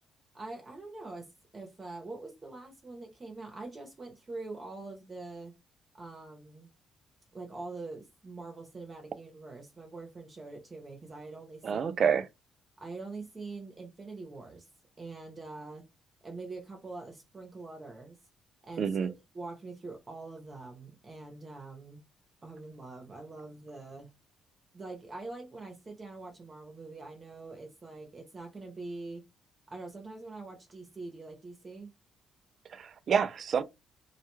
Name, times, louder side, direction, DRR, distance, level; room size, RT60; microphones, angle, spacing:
voice 1, 0.3-1.3 1.5-5.5 5.9-6.7 7.3-11.9 12.8-14.7 15.0-15.8 16.2-18.2 18.6-18.9 19.3-22.0 22.4-24.1 24.7-29.2 29.7-31.9, right 3 dB, 30° right, 0.7 m, -44 dB
voice 2, 11.6-12.3 18.8-19.1 32.7-33.6, right 7 dB, 55° right, 0.3 m, -28 dB
2.2 x 2.2 x 3.0 m
cardioid pair, 90°, 0 cm